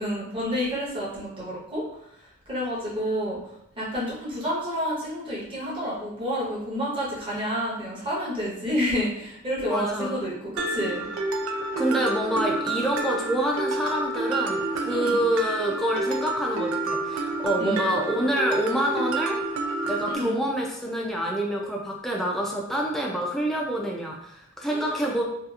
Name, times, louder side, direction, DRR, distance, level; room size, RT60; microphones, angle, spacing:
voice 1, 0.0-1.8 2.5-3.4 3.8-11.0 14.9-15.2 17.6-17.9 20.1-20.4 24.7-25.0, equal, 25° right, -8 dB, 0.9 m, -29 dB
voice 2, 9.6-10.2 11.8-19.4 19.9-25.2, right 1 dB, ahead, -2 dB, 0.3 m, -27 dB
Mallet percussion, 10.6-20.2, right 2 dB, 85° right, 0.3 m, -29 dB
2.8 x 2.4 x 2.3 m, 0.76 s
head